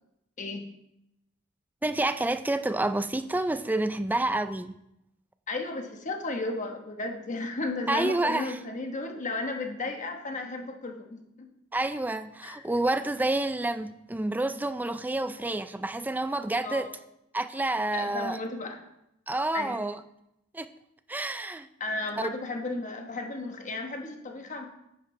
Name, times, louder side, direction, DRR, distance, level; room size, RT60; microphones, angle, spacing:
voice 1, 1.8-4.8 7.9-8.6 11.7-16.9 17.3-18.4 19.3-20.0 20.5-20.7 21.1-21.7 22.2-22.3, right 2 dB, 10° right, 0.3 m, -29 dB
voice 2, 5.5-11.5 12.4-12.6 16.6-16.9 17.9-18.8 19.5-19.8 21.8-24.7, left 2 dB, 35° left, 1.2 m, -34 dB
10.0 x 8.6 x 3.2 m
head